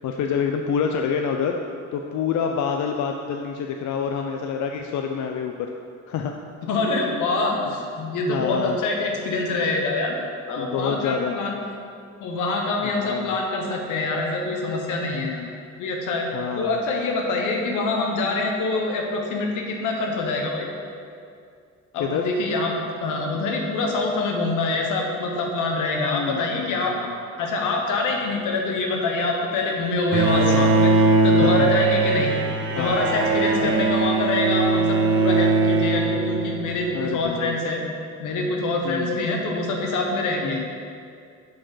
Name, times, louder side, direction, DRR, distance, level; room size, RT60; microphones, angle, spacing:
voice 1, 0.0-5.7 6.1-6.4 8.3-8.8 10.6-11.3 12.8-13.4 15.1-15.5 16.3-16.8 22.0-22.3 26.1-27.2 30.3-30.8 31.4-31.7 32.7-33.1 33.6-33.8 36.9-37.6 38.8-39.3 40.4-40.7, left 7 dB, 70° left, 3 dB, 0.5 m, -27 dB
voice 2, 6.6-10.2 10.5-11.6 12.2-15.4 15.8-20.7 21.9-27.1 27.4-30.9 31.2-32.3 32.8-37.8 38.2-40.6, left 3 dB, 90° left, 1 dB, 1.1 m, -25 dB
Bowed string instrument, 30.1-36.9, right 3 dB, 40° right, 0.7 m, -20 dB
5.1 x 4.6 x 5.6 m, 2.4 s
cardioid pair, 90°, 30 cm